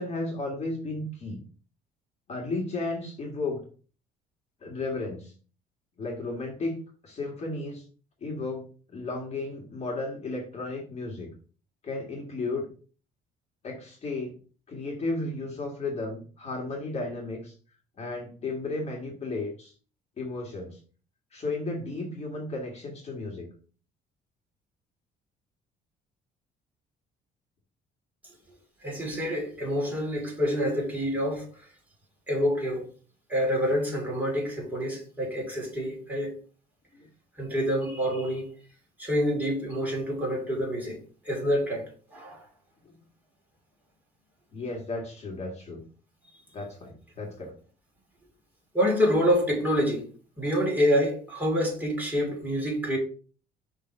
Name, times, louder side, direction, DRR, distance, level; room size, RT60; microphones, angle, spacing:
voice 1, 0.0-1.4 2.3-3.6 4.6-5.3 6.0-6.8 7.0-7.8 8.2-11.3 11.8-12.7 13.6-14.4 14.7-17.5 18.0-19.7 20.2-20.8 21.3-23.5 36.9-37.1 42.8-43.0 44.5-45.8 46.5-47.5, left 2 dB, 40° left, 1.8 m, -34 dB
voice 2, 28.8-31.7 32.3-32.9 33.3-36.4 37.4-38.5 39.0-41.0 41.2-42.4 48.7-50.1 50.4-53.0, equal, 10° right, 3.0 m, -27 dB
5.7 x 3.4 x 5.4 m
cardioid pair, 110°, 17 cm